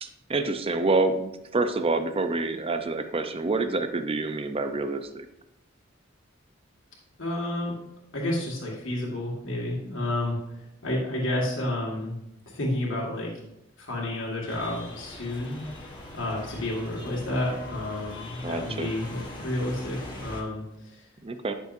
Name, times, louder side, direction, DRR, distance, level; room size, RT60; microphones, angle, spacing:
voice 1, 0.0-5.3 18.4-18.9 21.2-21.5, right 3 dB, 30° right, 8 dB, 0.6 m, -27 dB
voice 2, 7.2-7.7 8.1-12.2 12.5-13.4 13.8-15.6 16.1-21.1, left 1 dB, 70° left, -4 dB, 1.9 m, -30 dB
sound 1, 14.4-20.4, left 2 dB, 25° left, 1.6 m, -42 dB
11.0 x 6.5 x 2.6 m, 0.82 s
head